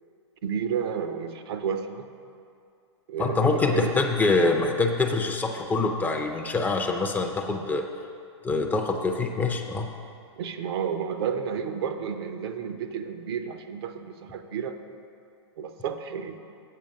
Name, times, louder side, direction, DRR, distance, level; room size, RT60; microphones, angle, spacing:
voice 1, 0.4-2.1 3.1-3.9 10.4-14.8 15.6-16.4, right 7 dB, 55° right, 8 dB, 0.6 m, -31 dB
voice 2, 3.2-7.8 8.4-9.9, left 3 dB, 10° left, 3 dB, 0.5 m, -25 dB
7.6 x 5.1 x 6.2 m, 2.5 s
hypercardioid pair, 120°, 15 cm